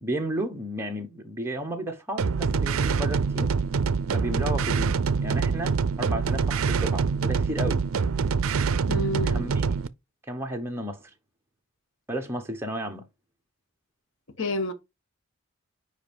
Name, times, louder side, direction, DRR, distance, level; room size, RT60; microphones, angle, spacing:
voice 1, 0.0-3.5 4.1-4.9 5.2-7.8 9.2-9.7 10.2-11.1 12.1-13.0, right 1 dB, 10° right, 1.0 m, -33 dB
sound 1, 2.2-9.9, right 5 dB, 65° right, 0.5 m, -25 dB
voice 2, 8.9-9.5 14.4-14.7, left 2 dB, 60° left, 1.2 m, -29 dB
5.2 x 5.1 x 5.1 m
head